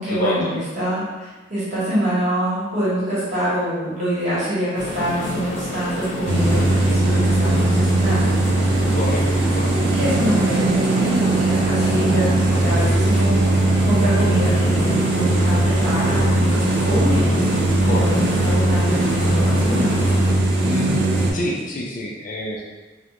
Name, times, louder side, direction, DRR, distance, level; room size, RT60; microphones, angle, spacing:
voice 1, 0.0-8.3 9.9-13.4 13.8-17.4 17.8-19.9, equal, 35° right, -9 dB, 1.0 m, -25 dB
sound 1, 4.8-20.3, equal, 70° left, 0.7 m, -29 dB
sound 2, 6.3-21.3, right 2 dB, 60° right, 0.4 m, -19 dB
voice 2, 8.9-9.2 9.6-9.7 17.8-18.2 20.6-21.1 21.3-22.6, left 1 dB, 40° left, -2 dB, 0.3 m, -27 dB
2.3 x 2.1 x 2.9 m, 1.2 s
head